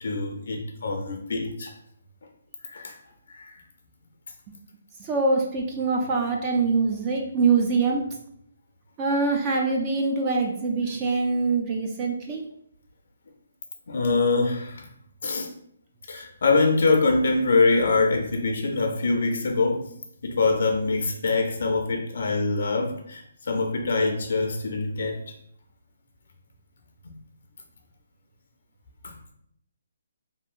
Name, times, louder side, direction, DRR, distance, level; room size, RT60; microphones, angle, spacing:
voice 1, 0.0-1.7 2.6-3.0 3.3-3.6 13.9-14.9 15.2-15.5 16.1-19.9 20.2-25.2 27.0-27.1 29.0-29.1, left 3 dB, 65° left, 3 dB, 0.4 m, -24 dB
voice 2, 5.0-8.0 9.0-12.4, right 4 dB, 25° right, 1 dB, 0.3 m, -24 dB
2.7 x 2.6 x 2.4 m, 0.70 s
hypercardioid pair, 160°, 0 cm